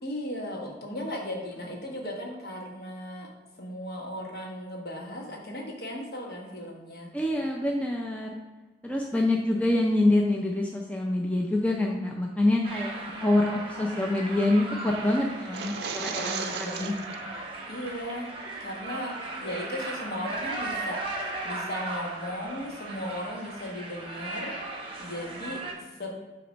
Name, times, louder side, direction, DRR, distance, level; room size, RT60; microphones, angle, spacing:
voice 1, 0.0-3.3 3.6-7.1 12.9-13.5 16.1-17.0 17.7-18.3 18.6-24.5 25.0-26.1, equal, 55° left, -1 dB, 1.2 m, -37 dB
voice 2, 7.1-8.4 8.8-13.0 13.2-16.9, left 1 dB, 10° left, 0 dB, 0.4 m, -26 dB
sound 1, 12.6-25.7, right 2 dB, 30° right, 0.8 m, -37 dB
sound 2, 15.4-17.2, right 5 dB, 60° right, 0.5 m, -35 dB
6.4 x 3.0 x 5.2 m, 1.2 s
head